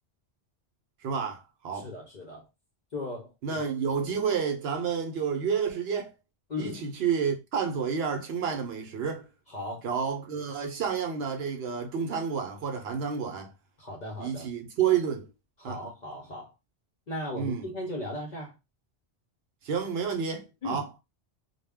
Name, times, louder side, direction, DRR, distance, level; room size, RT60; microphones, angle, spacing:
voice 1, 1.0-1.9 3.4-6.1 6.6-9.3 9.8-13.5 14.2-15.3 15.6-15.8 17.4-17.7 19.6-20.9, right 7 dB, 70° right, 0.8 m, -30 dB
voice 2, 1.7-2.5 2.9-3.6 6.5-6.8 9.5-9.9 13.8-14.5 15.6-16.5 17.1-18.6 20.6-20.9, left 1 dB, 50° left, 0.6 m, -37 dB
2.2 x 2.1 x 3.4 m
omnidirectional pair, 1.1 m